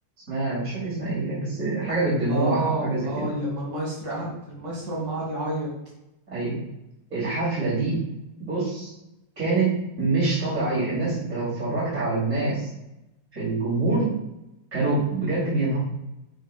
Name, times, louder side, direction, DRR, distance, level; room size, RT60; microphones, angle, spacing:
voice 1, 0.3-3.3 6.3-6.6 7.1-8.0 8.4-8.9 9.4-12.7 13.3-14.1 14.7-15.8, right 3 dB, 60° right, -10 dB, 3.2 m, -25 dB
voice 2, 2.3-5.7, right 1 dB, 90° right, -4 dB, 2.4 m, -30 dB
10.5 x 5.7 x 2.2 m, 0.88 s
omnidirectional pair, 1.6 m